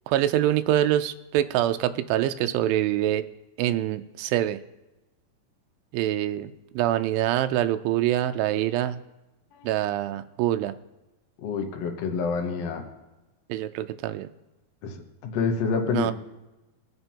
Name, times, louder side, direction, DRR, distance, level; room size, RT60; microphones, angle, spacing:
voice 1, 0.1-3.2 3.6-4.6 5.9-9.0 9.6-10.7 13.5-14.3 15.9-16.1, right 13 dB, 80° right, 9 dB, 2.2 m, -25 dB
voice 2, 11.4-12.8 14.8-16.1, left 5 dB, 70° left, 3 dB, 1.6 m, -28 dB
22.5 x 7.8 x 2.8 m, 1.0 s
omnidirectional pair, 4.4 m